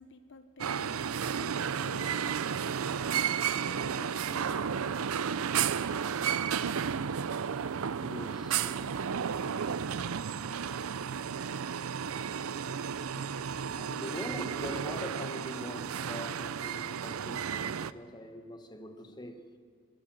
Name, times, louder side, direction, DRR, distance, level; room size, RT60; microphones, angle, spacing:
voice 1, 0.0-3.1 3.6-5.8, left 2 dB, 60° left, 1.1 m, -51 dB
sound 1, 0.6-17.9, right 7 dB, 90° right, 0.5 m, -33 dB
voice 2, 7.9-8.9 13.2-19.6, equal, 20° left, 1.3 m, -43 dB
26.5 x 13.0 x 7.6 m
head